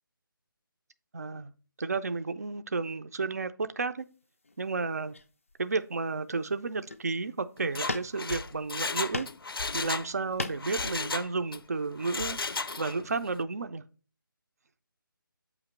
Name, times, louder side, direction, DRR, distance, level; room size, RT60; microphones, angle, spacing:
voice 1, 1.1-1.5 1.8-4.1 4.6-5.1 5.6-9.3 9.7-12.4 12.8-13.8, right 4 dB, 45° right, 9 dB, 0.4 m, -32 dB
sound 1, 4.4-4.6 5.1-5.9 6.3-6.5 6.8-7.2 7.9-8.5 8.9-9.5 9.8-10.8, left 2 dB, 35° left, 0.3 m, -37 dB
Mechanisms, 7.6-10.1 10.4-11.6 12.0-13.1 13.4-13.5, left 4 dB, 85° left, 0.5 m, -34 dB
8.0 x 3.0 x 5.6 m, 0.38 s
figure-of-eight pair, 175°, 12 cm